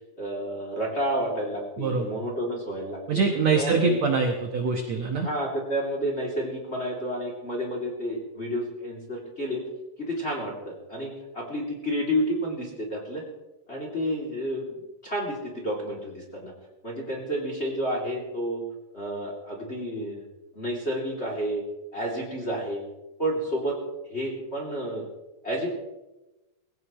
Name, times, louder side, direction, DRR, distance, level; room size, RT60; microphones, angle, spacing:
voice 1, 0.2-3.2 3.5-4.0 5.1-9.6 10.0-13.2 13.7-16.5 16.8-18.6 18.9-20.2 20.5-21.6 21.9-22.8 23.2-23.8 24.1-25.1 25.4-25.7, equal, 20° left, -1 dB, 2.1 m, -30 dB
voice 2, 3.1-5.3, right 5 dB, 75° right, 3 dB, 1.5 m, -24 dB
21.0 x 17.0 x 3.1 m, 1.0 s
omnidirectional pair, 5.0 m